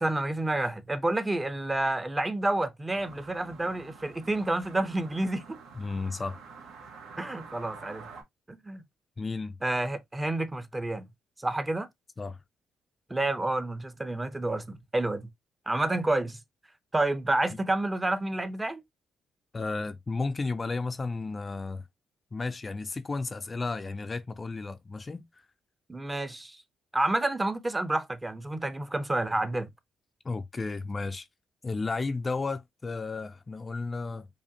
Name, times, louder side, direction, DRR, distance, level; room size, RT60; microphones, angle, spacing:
voice 1, 0.0-5.6 7.2-8.1 8.5-8.8 9.6-11.1 11.4-11.9 13.1-15.3 15.7-16.4 16.9-18.8 25.9-26.6 26.9-29.7, right 2 dB, 15° right, 0.6 m, -29 dB
sound 1, 2.9-8.2, right 5 dB, 85° right, 1.3 m, -48 dB
voice 2, 5.8-6.4 9.2-9.6 12.2-12.4 19.5-21.8 22.3-25.5 30.2-31.3 31.6-34.3, left 3 dB, 30° left, 0.4 m, -33 dB
4.9 x 2.5 x 2.7 m
cardioid pair, 90°, 0 cm